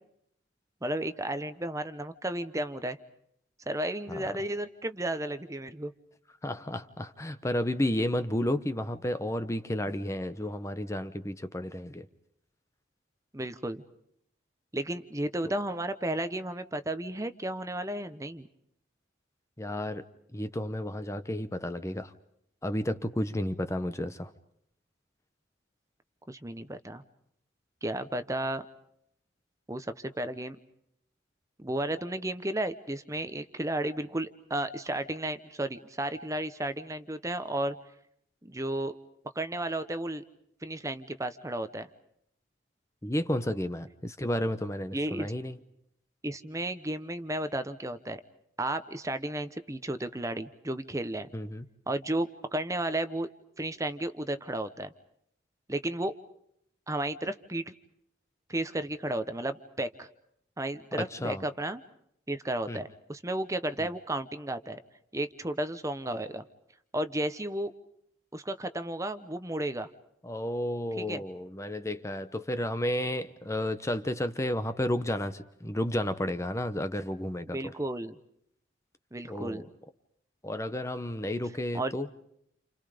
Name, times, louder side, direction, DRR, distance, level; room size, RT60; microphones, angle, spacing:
voice 1, 0.8-3.0 3.7-5.9 13.3-13.8 14.7-18.5 26.3-27.0 27.8-28.6 29.7-30.6 31.6-37.7 38.4-39.0 39.3-40.2 40.6-41.9 44.9-45.3 46.2-48.2 48.6-51.3 51.9-53.3 53.6-54.9 55.7-56.2 56.9-57.7 58.5-60.1 60.6-61.8 62.3-64.8 65.1-66.4 66.9-67.7 68.3-69.9 71.0-71.2 77.5-78.2 79.1-79.7 81.7-81.9, right 1 dB, 15° right, 11 dB, 1.0 m, -33 dB
voice 2, 6.4-12.1 19.6-20.0 20.3-22.1 22.6-24.3 43.0-45.6 51.3-51.6 60.9-61.4 62.7-62.8 63.8-63.9 70.2-77.7 79.2-79.7 80.4-82.1, left 1 dB, 15° left, 10 dB, 1.0 m, -32 dB
29.5 x 29.0 x 5.2 m, 0.72 s
head